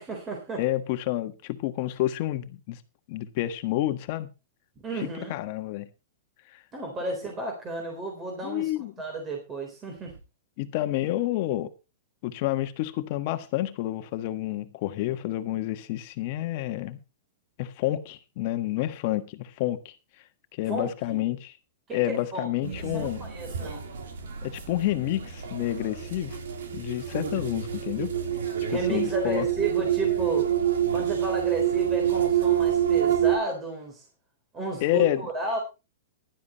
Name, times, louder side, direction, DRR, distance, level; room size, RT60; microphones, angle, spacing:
voice 1, 0.0-0.6 4.8-5.3 6.7-8.7 9.0-10.1 20.7-21.2 21.9-23.8 28.7-30.5 30.9-34.1 34.5-35.6, right 2 dB, 20° right, 3.7 m, -33 dB
voice 2, 0.6-2.8 3.1-4.3 4.9-5.9 6.5-6.6 8.4-8.9 10.6-11.7 12.2-17.0 17.6-19.9 20.5-21.5 21.9-23.2 24.4-26.4 26.7-28.1 28.7-29.5 34.8-35.2, left 14 dB, 45° left, 1.4 m, -29 dB
sound 1, 22.6-33.4, right 10 dB, 85° right, 3.5 m, -27 dB
15.5 x 12.0 x 3.0 m
hypercardioid pair, 150°, 0 cm